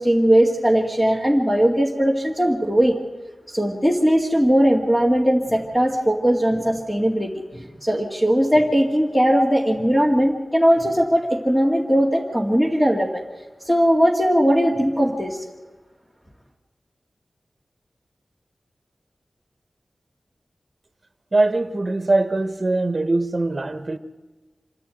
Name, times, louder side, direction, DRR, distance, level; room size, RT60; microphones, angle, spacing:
voice 1, 0.0-3.0 3.5-13.2 13.7-15.4, equal, 10° left, 2.3 m, -19 dB
voice 2, 21.3-24.0, right 2 dB, 40° right, 1.4 m, -21 dB
26.5 x 11.5 x 9.1 m
wide cardioid pair, 85°, 0 cm